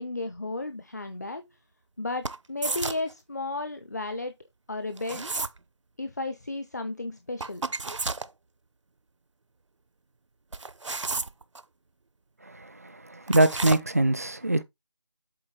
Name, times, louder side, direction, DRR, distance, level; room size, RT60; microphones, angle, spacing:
voice 1, 0.0-1.5 2.0-4.3 4.7-5.2 6.0-7.7, left 2 dB, 35° left, 0.6 m, -33 dB
sound 1, 2.2-3.1 5.0-5.6 7.4-8.3 10.5-11.6 13.3-13.8, right 3 dB, 85° right, 0.6 m, -31 dB
voice 2, 12.5-14.6, right 1 dB, 30° right, 0.4 m, -24 dB
7.8 x 4.0 x 3.7 m
figure-of-eight pair, 170°, 15 cm